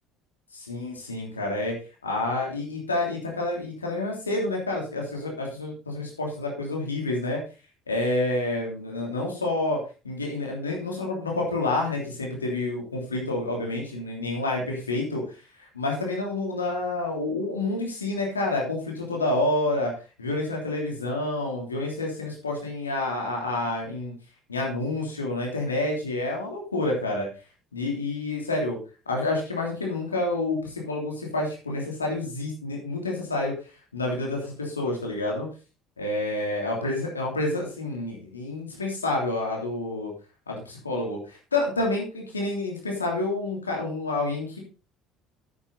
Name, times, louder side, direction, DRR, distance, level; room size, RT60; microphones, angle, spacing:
voice 1, 0.5-1.8 2.0-7.4 7.9-19.9 20.2-24.1 24.5-27.3 27.7-28.8 29.1-33.5 33.9-35.5 36.0-40.1 40.5-44.6, left 2 dB, 90° left, 0 dB, 3.0 m, -28 dB
9.7 x 9.0 x 4.0 m, 0.33 s
figure-of-eight pair, 60°, 0 cm